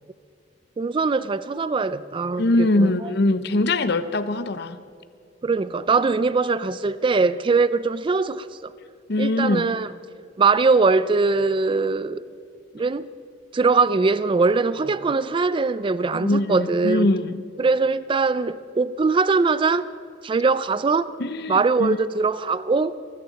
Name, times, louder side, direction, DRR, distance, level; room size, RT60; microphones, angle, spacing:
voice 1, 0.8-2.9 5.4-8.7 9.2-9.9 10.4-12.2 12.7-13.1 13.5-17.1 17.6-19.9 20.2-21.1 21.5-23.0, right 4 dB, 30° right, 0.4 m, -21 dB
voice 2, 2.4-4.8 9.1-9.6 16.1-17.4 21.2-22.0, left 2 dB, 65° left, 0.8 m, -22 dB
23.5 x 13.5 x 4.1 m
head